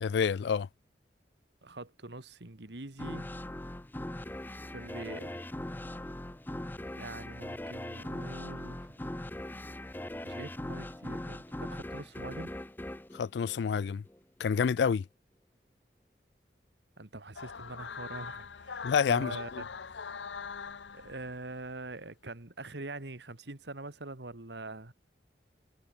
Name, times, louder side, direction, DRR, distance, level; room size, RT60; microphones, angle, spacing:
voice 1, 0.0-0.7 13.1-14.0 14.4-15.1 18.8-19.6, left 6 dB, 70° left, 0.3 m, -28 dB
voice 2, 1.6-3.3 4.7-5.4 7.0-8.9 10.2-12.5 17.0-19.6 20.9-24.9, right 2 dB, 75° right, 2.0 m, -44 dB
sound 1, 3.0-14.2, left 1 dB, 10° left, 0.6 m, -40 dB
sound 2, 17.4-21.7, left 5 dB, 90° left, 0.8 m, -42 dB
head